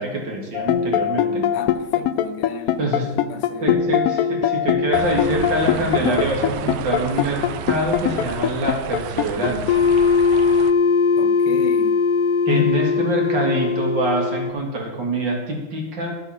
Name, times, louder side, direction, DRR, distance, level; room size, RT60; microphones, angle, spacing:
voice 1, 0.0-1.5 2.8-3.1 3.6-9.8 12.5-16.1, right 1 dB, 60° right, 2.7 m, -25 dB
sound 1, 0.5-14.5, left 6 dB, 90° left, 0.7 m, -20 dB
voice 2, 1.5-3.7 11.2-12.0 12.5-12.8, left 11 dB, 70° left, 1.1 m, -31 dB
sound 2, 4.9-10.7, right 9 dB, 85° right, 1.5 m, -32 dB
9.9 x 9.2 x 5.9 m
omnidirectional pair, 2.2 m